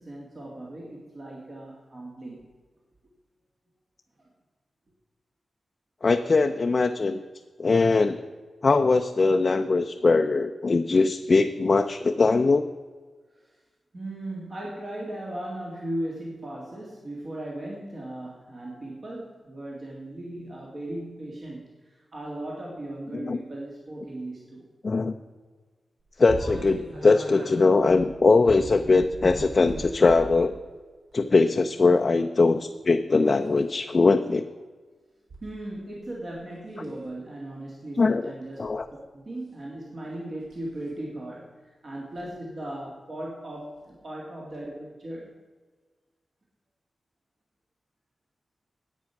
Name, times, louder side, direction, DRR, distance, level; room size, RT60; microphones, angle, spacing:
voice 1, 0.0-2.4 13.4-13.6 13.9-24.7 35.4-38.7 39.1-45.4, right 1 dB, 45° right, -3 dB, 2.1 m, -37 dB
voice 2, 6.0-7.2 7.6-8.2 8.6-12.7 23.1-23.4 24.8-25.1 26.2-30.6 31.1-34.5 38.0-38.3 38.6-38.8, left 3 dB, 40° left, 5 dB, 0.5 m, -21 dB
sound 1, 26.3-30.4 31.1-31.4 33.2-33.6 35.3-35.4 35.9-36.3 36.8-37.0 38.5-38.8 40.5-40.7 42.2-42.3 43.8-43.9 44.5-44.6, right 1 dB, 75° right, 3.4 m, -38 dB
10.5 x 8.5 x 5.8 m, 1.4 s
wide cardioid pair, 120°, 0 cm